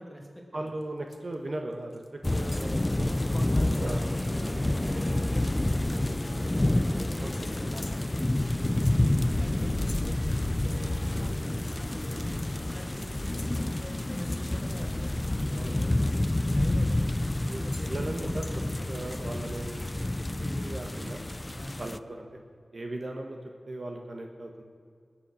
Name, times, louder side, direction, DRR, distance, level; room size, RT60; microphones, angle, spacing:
voice 1, 0.0-0.7 2.3-6.5 7.0-7.9 9.4-10.2 10.5-11.4 11.7-12.3 12.5-19.1 21.5-22.0, equal, ahead, 0 dB, 2.5 m, -45 dB
voice 2, 0.5-2.0 2.3-3.2 3.8-4.0 7.2-7.7 8.5-8.8 15.5-16.0 17.5-18.4 18.9-20.1 20.4-21.2 21.8-22.3 22.7-23.4 23.7-24.6, right 2 dB, 50° right, 3 dB, 1.2 m, -38 dB
sound 1, 0.7-1.3 1.6-2.1 2.4-4.0 4.4-4.6 4.9-6.5 7.3-15.5 16.0-19.5, left 2 dB, 45° left, 1.2 m, -52 dB
sound 2, 2.2-22.0, left 1 dB, 20° left, 0.4 m, -29 dB
Harp, 3.7-16.2, right 2 dB, 80° right, 2.1 m, -49 dB
20.0 x 7.3 x 6.3 m, 2.2 s
wide cardioid pair, 85°, 0 cm